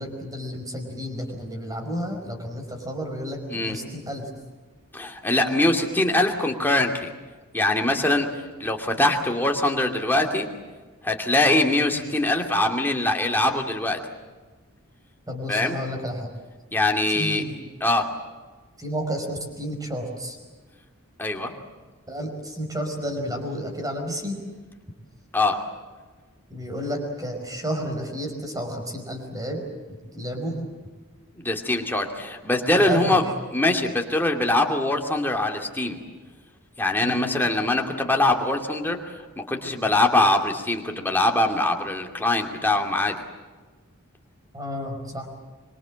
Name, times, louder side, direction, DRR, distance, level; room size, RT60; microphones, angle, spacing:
voice 1, 0.0-4.3 11.9-12.0 15.3-16.3 17.1-17.6 18.8-20.4 22.1-24.4 26.5-29.6 29.9-30.7 32.7-33.2 37.0-37.2 44.5-45.3, equal, 15° right, 3 dB, 5.1 m, -31 dB
voice 2, 4.9-7.1 7.5-8.3 8.6-10.5 11.0-14.0 15.5-15.8 16.7-17.4 17.8-18.1 21.2-21.5 25.3-25.6 31.4-33.2 33.5-36.0 36.8-43.2, left 2 dB, 10° left, 2 dB, 2.5 m, -23 dB
25.5 x 23.5 x 7.6 m, 1.4 s
head